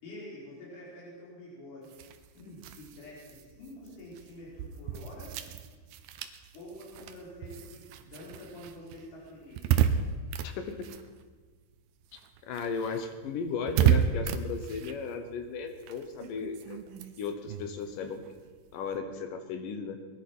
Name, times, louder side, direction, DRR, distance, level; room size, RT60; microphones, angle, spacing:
voice 1, 0.0-2.0 2.3-5.3 6.5-9.7, left 1 dB, 50° left, -6 dB, 6.1 m, -47 dB
sound 1, 1.8-11.7 12.0-19.0, right 9 dB, 75° right, 2.4 m, -33 dB
voice 2, 10.4-10.9 12.4-16.8 17.2-18.2 18.7-20.0, left 5 dB, 65° left, 7 dB, 2.5 m, -35 dB
20.0 x 11.5 x 6.1 m, 1.4 s
omnidirectional pair, 4.6 m